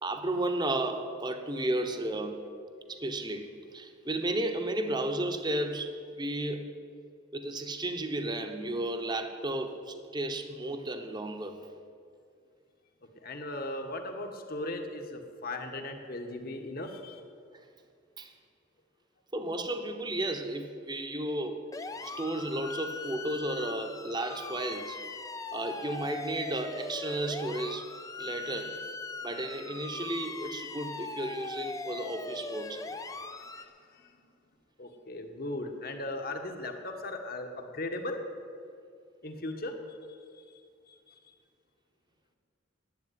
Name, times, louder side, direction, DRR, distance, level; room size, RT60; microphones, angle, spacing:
voice 1, 0.0-2.5 2.9-6.7 7.3-11.6 18.2-18.3 19.3-21.6 22.0-25.0 25.5-27.9 28.2-28.9 29.2-32.9, right 1 dB, 25° right, 6 dB, 1.0 m, -33 dB
voice 2, 13.2-17.2 33.5-33.7 34.8-38.2 39.2-39.7 41.1-41.2, left 2 dB, 50° left, 4 dB, 1.5 m, -37 dB
sound 1, 21.7-33.7, left 3 dB, 20° left, 0.5 m, -40 dB
11.0 x 8.7 x 9.5 m, 2.3 s
head